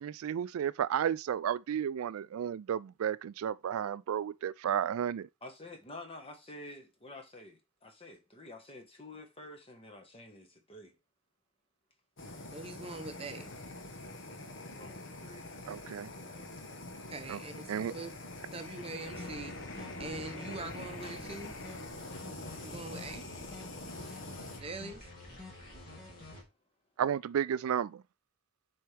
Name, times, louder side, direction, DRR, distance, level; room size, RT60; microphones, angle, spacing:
voice 1, 0.0-5.3 15.7-16.1 17.3-17.4 17.7-17.9 27.0-28.0, right 9 dB, 85° right, 0.3 m, -32 dB
voice 2, 5.4-11.0 14.7-15.5 16.2-16.5 21.0-21.2, left 2 dB, 25° left, 1.3 m, -49 dB
Fire, 12.2-24.6, left 2 dB, 60° left, 1.1 m, -45 dB
voice 3, 12.5-13.5 17.1-18.1 18.5-21.5 22.6-23.2 24.6-25.1, right 3 dB, 25° right, 0.8 m, -43 dB
sound 1, 19.0-26.4, left 2 dB, 40° left, 2.8 m, -49 dB
7.6 x 4.5 x 3.4 m
head